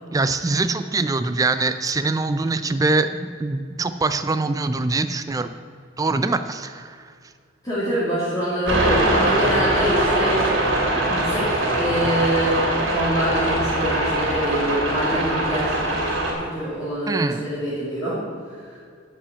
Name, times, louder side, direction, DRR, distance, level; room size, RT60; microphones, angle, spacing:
voice 1, 0.1-5.5 6.0-7.0 17.1-17.4, right 3 dB, 20° right, 10 dB, 0.3 m, -23 dB
voice 2, 7.6-18.2 18.5-18.8, equal, 20° left, -10 dB, 2.6 m, -25 dB
sound 1, 8.7-16.3, right 1 dB, 85° right, 2.8 m, -22 dB
10.0 x 5.6 x 8.5 m, 2.2 s
head